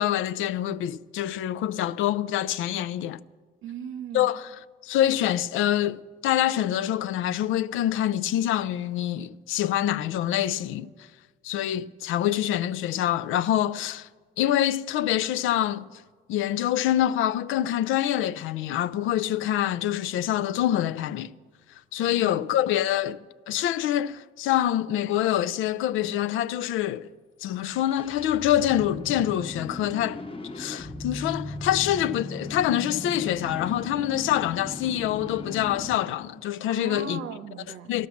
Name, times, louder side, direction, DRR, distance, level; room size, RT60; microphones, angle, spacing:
voice 1, 0.0-3.2 4.1-4.4 4.8-10.9 11.4-14.1 14.4-16.0 16.3-21.3 21.9-23.2 23.5-27.1 27.4-30.2 30.5-37.2 37.9-38.1, left 12 dB, 85° left, 0.4 m, -25 dB
voice 2, 3.6-4.3 22.0-22.5 36.7-37.9, right 7 dB, 85° right, 0.9 m, -38 dB
sound 1, 27.5-36.1, left 2 dB, 25° left, 1.0 m, -37 dB
13.0 x 11.5 x 7.1 m
cardioid pair, 90°, 20 cm